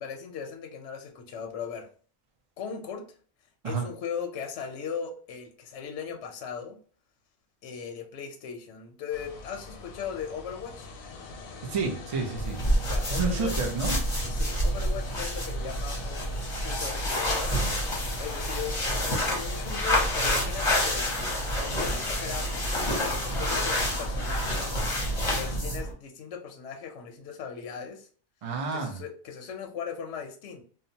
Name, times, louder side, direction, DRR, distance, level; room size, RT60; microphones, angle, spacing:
voice 1, 0.0-1.9 2.6-3.0 3.6-6.8 7.6-10.9 12.9-13.5 14.3-17.5 18.2-21.1 21.6-24.7 25.2-28.1 28.7-30.6, left 7 dB, 65° left, 2 dB, 0.8 m, -38 dB
sound 1, 9.1-25.6, left 4 dB, 90° left, 1.0 m, -42 dB
voice 2, 11.6-12.6 13.1-14.0 28.4-29.0, right 4 dB, 65° right, -1 dB, 0.3 m, -30 dB
sound 2, 12.4-25.9, equal, 30° left, 0.6 m, -28 dB
2.8 x 2.0 x 2.7 m, 0.42 s
omnidirectional pair, 1.4 m